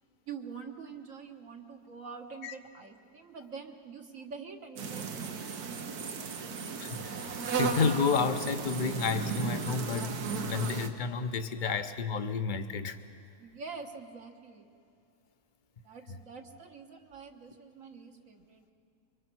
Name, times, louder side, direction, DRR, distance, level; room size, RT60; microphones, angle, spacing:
voice 1, 0.3-6.5 13.4-14.7 15.8-18.6, right 5 dB, 60° right, 3 dB, 1.6 m, -46 dB
sound 1, 4.8-10.9, right 5 dB, 80° right, 1.6 m, -35 dB
voice 2, 6.8-13.0, left 5 dB, 40° left, 9 dB, 0.9 m, -31 dB
24.5 x 23.5 x 6.2 m, 2.5 s
omnidirectional pair, 1.6 m